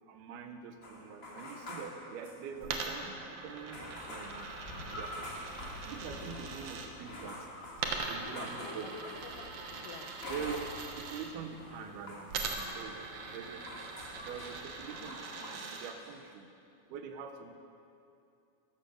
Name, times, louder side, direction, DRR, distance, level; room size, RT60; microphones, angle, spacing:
voice 1, 0.0-4.5 4.9-5.5 5.7-7.5 8.1-8.9 10.3-10.6 11.0-12.3 12.5-13.0 13.3-13.6 14.2-16.5 16.9-17.5, right 6 dB, 85° right, 6 dB, 2.9 m, -44 dB
sound 1, 0.8-2.9 3.1-3.2 3.7-11.1 11.4-15.7 16.0-16.3, left 1 dB, 55° left, 0.6 m, -48 dB
Coin (dropping), 2.6-6.9 7.8-11.3 12.3-15.9, right 4 dB, 65° right, 2.1 m, -42 dB
sound 2, 3.3-15.1, left 1 dB, 20° left, 2.7 m, -49 dB
voice 2, 8.1-8.9 9.2-10.4, left 7 dB, 75° left, 3 dB, 1.9 m, -50 dB
13.5 x 13.0 x 6.5 m, 2.6 s
omnidirectional pair, 4.4 m